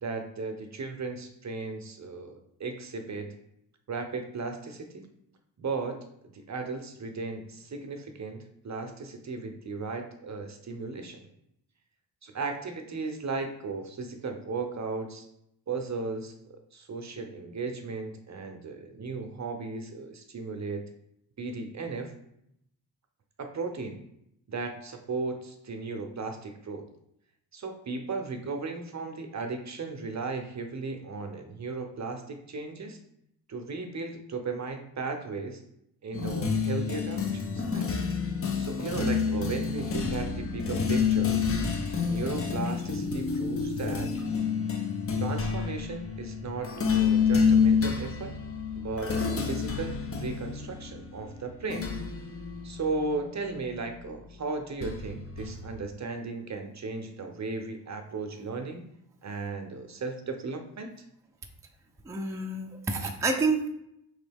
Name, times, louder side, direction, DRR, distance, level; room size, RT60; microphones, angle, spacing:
voice 1, 0.0-3.3 3.9-5.1 5.6-6.0 6.3-11.3 12.2-15.3 15.7-20.9 21.4-22.1 23.4-24.0 24.5-26.9 27.5-33.0 33.5-35.6 36.0-37.9 38.6-41.4 42.0-44.1 45.2-48.3 48.8-51.9 52.6-58.8 59.2-60.9, right 4 dB, 40° right, 5 dB, 0.7 m, -36 dB
sound 1, 36.1-54.0 54.8-55.8, left 5 dB, 30° left, 0.7 m, -29 dB
voice 2, 62.0-63.7, right 3 dB, 5° right, 2 dB, 0.6 m, -28 dB
3.8 x 3.1 x 3.4 m, 0.77 s
cardioid pair, 65°, 43 cm